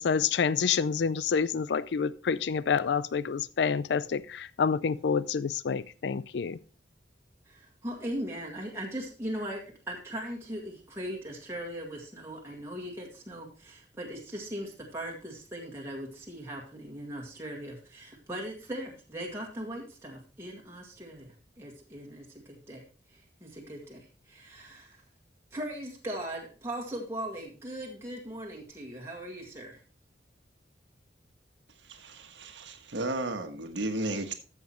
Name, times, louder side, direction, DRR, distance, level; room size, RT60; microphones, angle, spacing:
voice 1, 0.0-6.6, left 6 dB, 75° left, 0.4 m, -28 dB
voice 2, 7.5-22.8 23.1-25.0 25.5-29.8, right 1 dB, 15° right, 1.9 m, -39 dB
voice 3, 31.8-34.3, right 2 dB, 90° right, 1.4 m, -34 dB
13.0 x 7.3 x 3.1 m
head